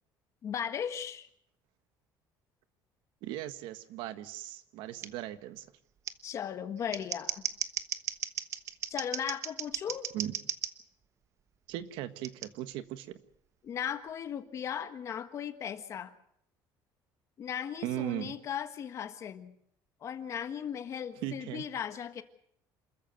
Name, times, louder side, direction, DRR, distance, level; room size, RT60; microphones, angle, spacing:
voice 1, 0.4-1.3 6.2-7.4 8.9-10.1 13.6-16.1 17.4-19.5 20.0-22.2, left 8 dB, 35° left, 9 dB, 1.5 m, -37 dB
voice 2, 3.2-5.7 10.1-10.3 11.7-13.2 17.8-18.4 21.2-21.6, right 13 dB, 85° right, 11 dB, 1.5 m, -38 dB
Scissors, 5.0-5.1 6.0-6.1 6.8-10.7 12.2-12.5, right 9 dB, 35° right, 1.1 m, -36 dB
27.5 x 14.5 x 7.9 m, 0.71 s
cardioid pair, 165°, 8 cm